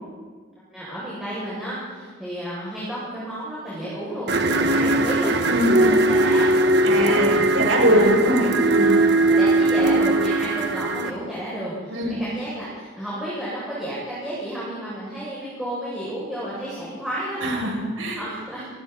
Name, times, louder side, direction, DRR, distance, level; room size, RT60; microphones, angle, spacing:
voice 1, 0.7-5.4 5.8-6.5 6.9-7.5 7.9-8.0 9.3-17.4 18.2-18.6, right 1 dB, ahead, -10 dB, 7.5 m, -32 dB
sound 1, 4.3-11.1, right 2 dB, 55° right, 1.5 m, -19 dB
voice 2, 6.8-9.0 11.9-12.2 17.4-18.2, equal, 75° right, -1 dB, 7.6 m, -22 dB
27.5 x 22.5 x 4.4 m, 1.5 s
head